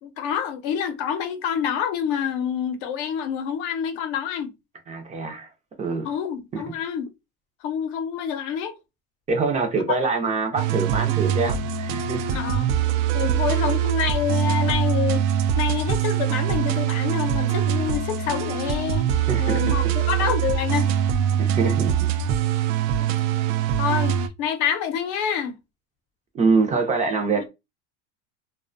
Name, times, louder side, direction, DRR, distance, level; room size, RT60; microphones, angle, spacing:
voice 1, 0.0-4.5 6.0-7.1 7.6-8.8 12.3-12.7 13.1-21.0 23.0-23.1 23.8-25.6 27.4-27.5, left 8 dB, 70° left, 0.6 m, -27 dB
voice 2, 4.9-5.5 5.8-6.1 6.5-6.6 9.3-12.4 19.3-19.7 21.4-22.1 22.6-22.7 26.3-27.5, right 4 dB, 20° right, 0.4 m, -24 dB
sound 1, 10.6-24.3, right 9 dB, 90° right, 0.5 m, -23 dB
2.5 x 2.1 x 2.4 m
cardioid pair, 140°, 35 cm